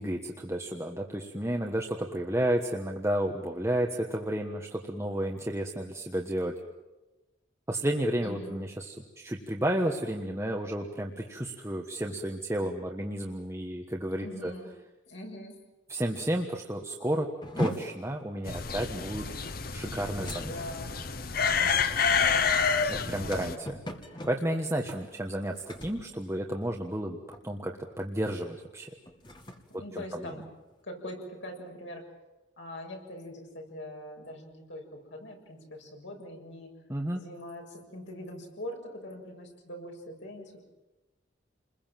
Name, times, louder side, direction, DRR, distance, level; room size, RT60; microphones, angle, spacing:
voice 1, 0.0-6.5 7.7-14.5 15.9-17.3 17.6-20.5 22.9-23.8 24.3-27.2 27.4-28.9 29.7-30.3 36.9-37.2, right 1 dB, 15° right, 1 dB, 1.4 m, -32 dB
voice 2, 8.2-8.6 14.1-14.7 15.1-15.6 20.2-20.9 21.4-22.5 22.9-23.5 29.7-30.4 30.8-32.0 32.6-36.7 37.1-40.6, left 1 dB, 75° left, 1 dB, 7.1 m, -42 dB
sound 1, 17.4-27.0 27.3-27.7 28.1-28.3 28.9-30.8, equal, 25° left, 2.2 m, -41 dB
sound 2, 18.5-23.6, left 6 dB, 50° left, 1.0 m, -28 dB
29.5 x 21.5 x 7.6 m, 1.1 s
head